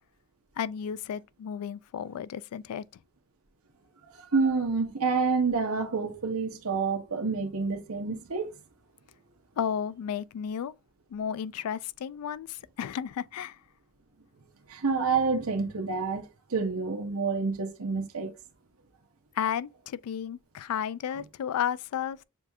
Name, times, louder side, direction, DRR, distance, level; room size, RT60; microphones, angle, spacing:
voice 1, 0.6-2.9 9.6-10.8 11.1-13.6 19.4-22.2, left 8 dB, 85° left, 0.3 m, -33 dB
voice 2, 4.2-8.5 14.7-18.3, right 4 dB, 75° right, 1.0 m, -28 dB
6.8 x 2.4 x 2.7 m
head